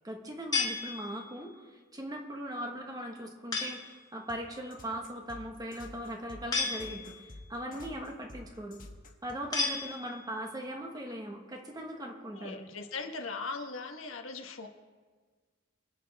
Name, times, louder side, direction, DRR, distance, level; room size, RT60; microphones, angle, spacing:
voice 1, 0.0-1.5 1.9-8.8 9.2-12.6, equal, 20° right, 2 dB, 1.4 m, -39 dB
sound 1, 0.5-1.5 3.5-4.0 6.5-7.4 9.5-10.4, left 4 dB, 20° left, 1.6 m, -33 dB
sound 2, 4.3-9.6, left 2 dB, 45° left, 1.4 m, -49 dB
voice 2, 12.3-14.7, left 4 dB, 85° left, 4 dB, 1.3 m, -40 dB
24.5 x 8.7 x 3.5 m, 1.5 s
head